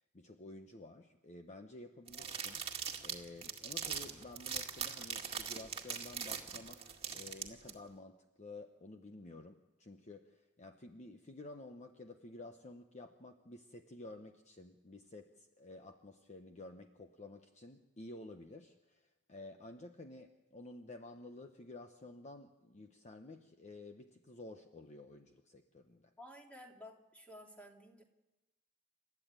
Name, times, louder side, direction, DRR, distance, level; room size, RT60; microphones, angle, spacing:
voice 1, 0.0-2.6 3.0-26.1, left 2 dB, 30° left, 6 dB, 1.0 m, -52 dB
sound 1, 2.1-7.7, right 7 dB, 25° right, 2.1 m, -41 dB
voice 2, 26.2-28.0, left 1 dB, 5° left, 1 dB, 2.8 m, -53 dB
28.5 x 13.5 x 9.0 m, 1.0 s
head